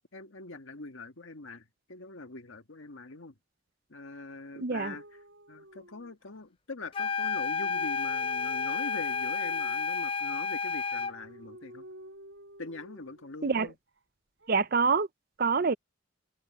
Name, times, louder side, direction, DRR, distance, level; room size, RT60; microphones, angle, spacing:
voice 1, 0.1-3.3 3.9-5.0 5.5-11.9 12.6-13.8 15.6-15.8, left 3 dB, 80° left, 1.7 m, -43 dB
voice 2, 4.6-4.9 13.4-13.7 14.5-15.1 15.4-15.7, right 5 dB, 50° right, 0.6 m, -26 dB
sound 1, 4.7-6.4 7.2-9.9 10.7-13.3 14.4-15.0, right 1 dB, 65° right, 5.8 m, -51 dB
sound 2, 6.9-11.2, left 5 dB, 25° left, 0.4 m, -31 dB
head